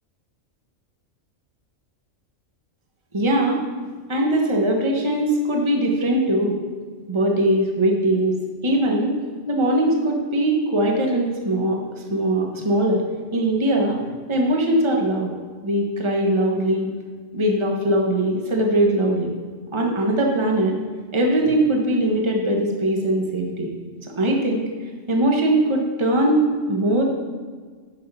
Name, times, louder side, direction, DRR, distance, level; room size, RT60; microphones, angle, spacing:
voice 1, 3.1-3.6 4.1-6.5 7.1-8.3 8.6-9.2 9.5-13.0 13.3-14.0 14.3-15.3 15.6-16.9 17.3-19.3 19.7-20.7 21.1-23.7 24.2-24.6 25.1-27.0, right 1 dB, 25° right, 0 dB, 1.3 m, -21 dB
10.5 x 6.8 x 5.7 m, 1.5 s
omnidirectional pair, 1.3 m